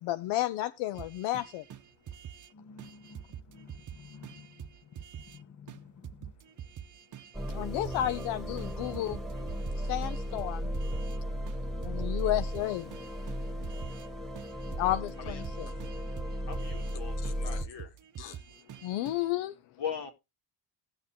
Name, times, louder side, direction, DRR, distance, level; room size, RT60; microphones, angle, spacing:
voice 1, 0.0-1.6 7.5-9.2 9.9-10.7 11.8-12.9 14.8-15.7 17.2-17.6 18.2-18.4 18.8-19.5, left 14 dB, 85° left, 0.6 m, -32 dB
sound 1, 0.9-2.5 2.8-5.4 5.7-5.8 6.0-8.3 8.6-11.2 11.5-14.1 14.3-17.0 17.2-19.3, right 9 dB, 40° right, 0.7 m, -46 dB
voice 2, 2.5-3.2 3.5-4.7 5.2-6.3, left 5 dB, 40° left, 0.8 m, -52 dB
sound 2, 7.3-17.6, equal, ahead, 1.7 m, -35 dB
voice 3, 16.5-17.9 19.8-20.1, left 7 dB, 60° left, 2.2 m, -39 dB
18.0 x 6.5 x 2.8 m
cardioid pair, 85°, 46 cm